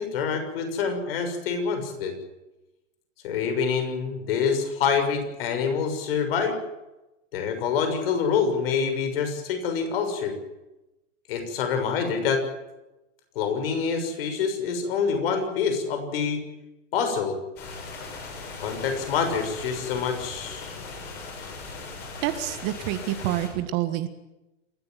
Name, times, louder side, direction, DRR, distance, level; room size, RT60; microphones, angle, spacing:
voice 1, 0.0-2.2 3.2-6.6 7.3-10.4 11.3-12.4 13.3-16.4 16.9-17.4 18.6-20.8, left 6 dB, 50° left, 7 dB, 6.5 m, -26 dB
sound 1, 17.6-23.5, left 3 dB, 25° left, 7.6 m, -39 dB
voice 2, 22.2-24.1, right 13 dB, 30° right, 10 dB, 1.5 m, -27 dB
28.5 x 14.5 x 9.2 m, 0.98 s
hypercardioid pair, 160°, 38 cm